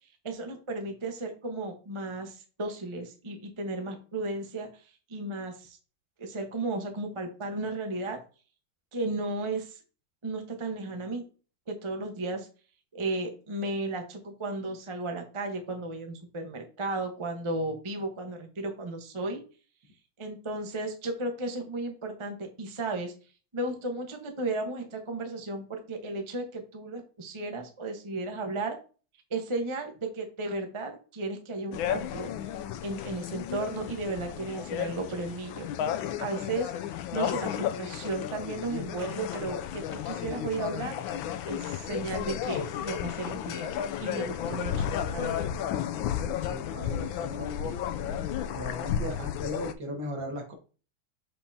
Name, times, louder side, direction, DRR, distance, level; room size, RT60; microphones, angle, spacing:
voice 1, 0.2-4.8 5.1-5.8 6.2-8.2 8.9-9.8 10.2-11.2 11.7-12.5 12.9-19.4 20.2-23.1 23.5-28.8 29.3-32.3 32.8-35.7 36.2-36.7 37.1-41.0 41.4-44.9 45.1-45.5, right 2 dB, 30° right, 4 dB, 0.6 m, -34 dB
sound 1, 31.7-49.7, left 9 dB, 75° left, 1.3 m, -33 dB
voice 2, 46.4-47.8 48.5-50.5, equal, 60° right, 1 dB, 2.3 m, -38 dB
7.1 x 5.7 x 2.7 m, 0.36 s
omnidirectional pair, 2.3 m